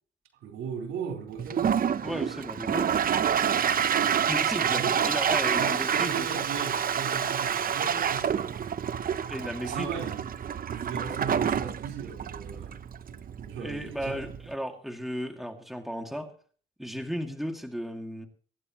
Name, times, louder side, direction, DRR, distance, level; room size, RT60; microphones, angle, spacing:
voice 1, 0.4-1.7 3.4-4.0 4.7-5.2 5.6-8.7 9.6-12.8 13.1-14.2, right 6 dB, 85° right, 4.2 m, -38 dB
Toilet flush, 1.4-14.5, right 8 dB, 45° right, 0.8 m, -28 dB
voice 2, 2.0-3.0 4.3-6.4 9.3-9.9 13.6-16.3 16.8-18.3, equal, ahead, 2.4 m, -35 dB
24.0 x 10.5 x 3.1 m
cardioid pair, 90°, 20 cm